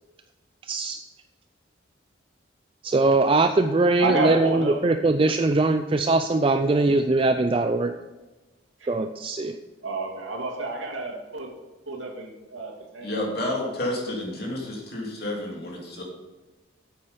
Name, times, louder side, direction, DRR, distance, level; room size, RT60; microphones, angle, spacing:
voice 1, 0.6-1.0 2.8-7.9 8.9-9.6, right 2 dB, 25° right, 8 dB, 0.3 m, -21 dB
voice 2, 4.0-4.9 8.8-8.9 9.8-11.5 11.9-13.2, right 2 dB, 85° right, -1 dB, 2.4 m, -30 dB
voice 3, 13.0-16.0, left 1 dB, 55° left, -2 dB, 2.9 m, -30 dB
8.6 x 8.5 x 5.2 m, 1.2 s
head